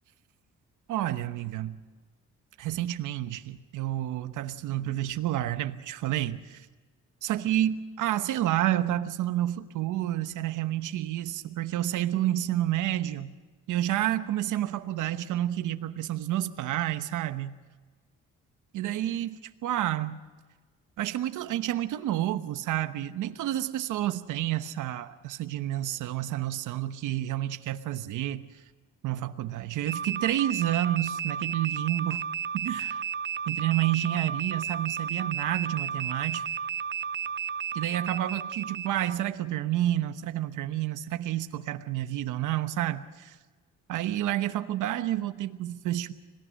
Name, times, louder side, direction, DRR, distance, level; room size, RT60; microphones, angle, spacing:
voice 1, 0.9-1.8 2.6-6.7 7.2-13.3 13.7-17.5 18.7-20.2 21.0-28.6 29.0-32.2 32.5-33.0 33.5-36.4 37.7-43.4 43.9-46.1, right 13 dB, 85° right, 10 dB, 1.0 m, -29 dB
sound 1, 29.9-39.2, right 7 dB, 35° right, 0.6 m, -33 dB
26.5 x 18.5 x 6.4 m, 1.3 s
cardioid pair, 90°, 30 cm